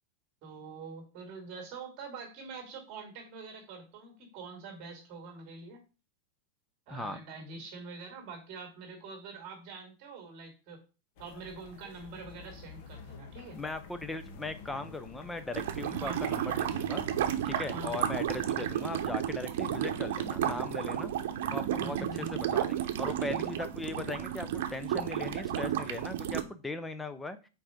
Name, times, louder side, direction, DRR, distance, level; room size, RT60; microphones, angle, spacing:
voice 1, 0.4-5.8 6.9-10.8 11.2-13.6 15.9-16.5 17.7-18.4 21.7-22.7, right 4 dB, 35° right, 3 dB, 2.5 m, -45 dB
voice 2, 6.9-7.2 13.5-17.0 17.4-21.1 21.5-22.0 22.3-27.5, left 2 dB, 5° left, 10 dB, 0.5 m, -39 dB
sound 1, 11.2-18.7, left 5 dB, 45° left, 1.2 m, -49 dB
sound 2, 15.5-26.4, right 10 dB, 65° right, 0.9 m, -32 dB
6.4 x 4.7 x 5.1 m, 0.32 s
supercardioid pair, 170°, 0 cm